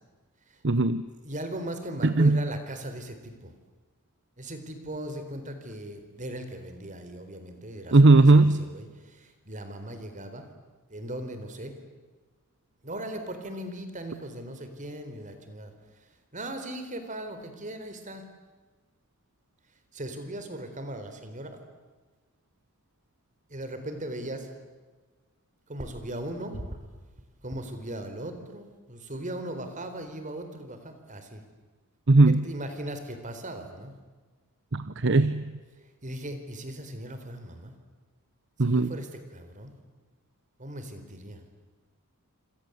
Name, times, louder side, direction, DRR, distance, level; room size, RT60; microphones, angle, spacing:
voice 1, 0.6-1.0 2.0-2.4 7.9-8.7 32.1-32.4 34.7-35.5 38.6-38.9, right 2 dB, 55° right, 13 dB, 0.9 m, -18 dB
voice 2, 1.2-3.5 4.4-10.5 10.9-11.7 12.8-15.7 16.3-18.2 19.9-21.6 23.5-24.5 25.7-26.8 27.4-31.4 32.2-33.9 36.0-37.7 38.6-39.7 40.6-41.4, right 1 dB, 35° right, 8 dB, 4.1 m, -38 dB
27.5 x 26.5 x 8.2 m, 1.3 s
head